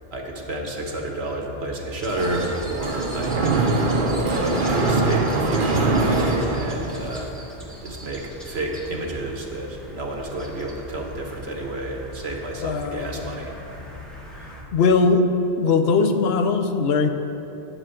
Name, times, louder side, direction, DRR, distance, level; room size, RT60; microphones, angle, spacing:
voice 1, 0.1-13.8, right 1 dB, 75° right, 1 dB, 1.5 m, -30 dB
sound 1, 2.0-14.6, equal, ahead, 1.3 m, -41 dB
Mechanisms, 2.0-7.2, right 3 dB, 55° right, 1.1 m, -23 dB
voice 2, 12.6-13.1 14.7-15.3 15.6-17.1, left 4 dB, 70° left, 7 dB, 0.9 m, -19 dB
9.8 x 5.0 x 7.6 m, 3.0 s
omnidirectional pair, 1.1 m